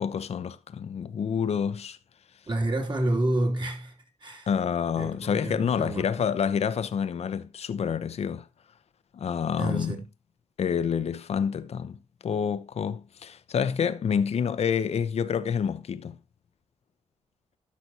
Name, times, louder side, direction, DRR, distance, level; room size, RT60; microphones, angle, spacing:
voice 1, 0.0-2.0 4.5-8.5 9.1-9.9 10.6-16.2, left 7 dB, 65° left, 0.8 m, -28 dB
voice 2, 2.5-4.5 5.0-6.0 9.6-10.1, right 1 dB, 40° right, 3.1 m, -29 dB
12.5 x 6.0 x 2.9 m
cardioid pair, 65°, 12 cm